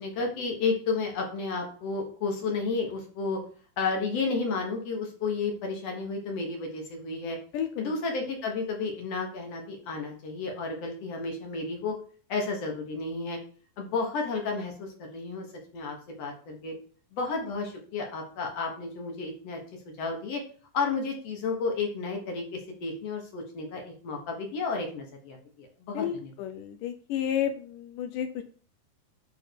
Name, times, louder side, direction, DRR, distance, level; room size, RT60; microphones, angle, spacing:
voice 1, 0.0-3.4 3.8-7.4 7.8-11.9 12.3-13.4 13.8-15.5 15.7-16.7 17.1-19.6 19.9-20.4 20.7-26.3, left 4 dB, 55° left, 1 dB, 2.0 m, -32 dB
voice 2, 7.5-8.0 25.9-28.4, left 9 dB, 80° left, 8 dB, 2.0 m, -31 dB
10.0 x 3.8 x 4.6 m, 0.43 s
omnidirectional pair, 4.0 m